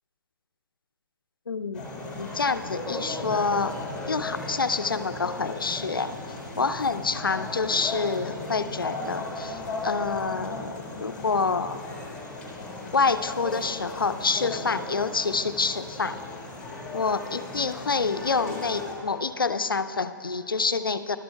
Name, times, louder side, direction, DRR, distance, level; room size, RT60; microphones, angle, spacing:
voice 1, 1.5-1.9 2.2-3.8 4.1-6.2 6.6-11.8 12.9-16.2 16.9-21.2, left 4 dB, 85° left, 11 dB, 0.4 m, -27 dB
sound 1, 1.7-18.9, left 2 dB, 10° left, 1.7 m, -36 dB
13.0 x 12.0 x 2.2 m, 2.8 s
figure-of-eight pair, 125°, 11 cm